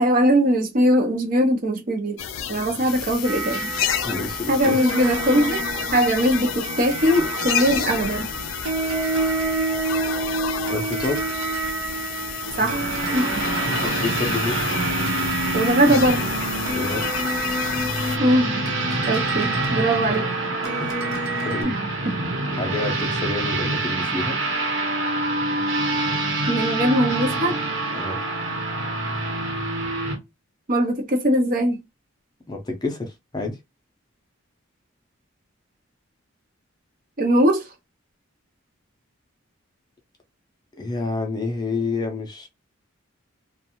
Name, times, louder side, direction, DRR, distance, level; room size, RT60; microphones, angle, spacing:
voice 1, 0.0-2.2 2.5-3.7 4.5-5.6 5.9-8.3 12.6-13.5 15.5-16.2 18.2-18.6 19.0-20.3 21.6-22.1 26.5-27.6 30.7-31.8 37.2-37.6, equal, 40° right, 0.6 m, -21 dB
sound 1, 2.2-18.2, left 9 dB, 75° left, 0.4 m, -30 dB
sound 2, 3.2-21.6, right 3 dB, 90° right, 0.9 m, -29 dB
voice 2, 4.0-4.8 10.7-11.3 13.6-14.6 16.7-17.1 20.6-20.9 21.4-21.7 22.5-24.4 27.9-28.2 32.5-33.6 40.7-42.5, left 3 dB, 20° left, 0.5 m, -29 dB
sound 3, 12.4-30.2, right 2 dB, 65° right, 1.1 m, -26 dB
2.5 x 2.2 x 2.8 m
head